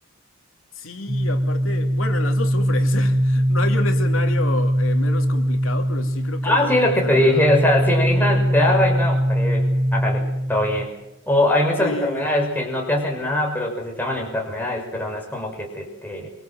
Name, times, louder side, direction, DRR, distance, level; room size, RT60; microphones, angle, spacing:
voice 1, 0.7-7.5 11.8-12.3, left 2 dB, 70° left, 2.8 m, -30 dB
sound 1, 1.1-10.9, equal, 20° right, 6.0 m, -21 dB
voice 2, 6.4-11.0 11.3-16.3, left 1 dB, 10° left, 6.1 m, -22 dB
26.5 x 25.0 x 7.8 m
head